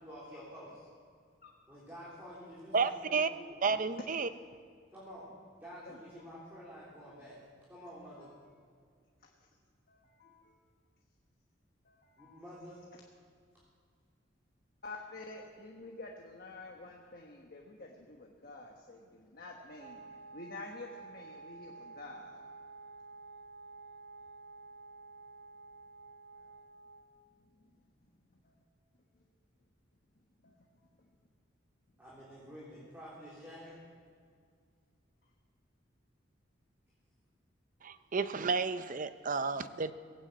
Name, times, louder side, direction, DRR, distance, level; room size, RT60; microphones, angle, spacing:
voice 1, 0.0-0.7 1.7-3.6 4.9-5.3 5.6-7.4 7.7-8.3 12.2-12.8 32.0-33.7, equal, 10° right, -9 dB, 3.4 m, -49 dB
voice 2, 2.7-3.3 3.6-4.3 37.8-39.9, right 4 dB, 45° right, 12 dB, 0.6 m, -31 dB
voice 3, 9.9-10.4 11.9-12.4 14.8-22.4 28.4-28.5 30.4-30.6, left 2 dB, 50° left, 0 dB, 1.2 m, -49 dB
Wind instrument woodwind instrument, 19.8-27.2, right 3 dB, 70° right, 1.7 m, -51 dB
17.5 x 9.1 x 8.0 m, 2.1 s
head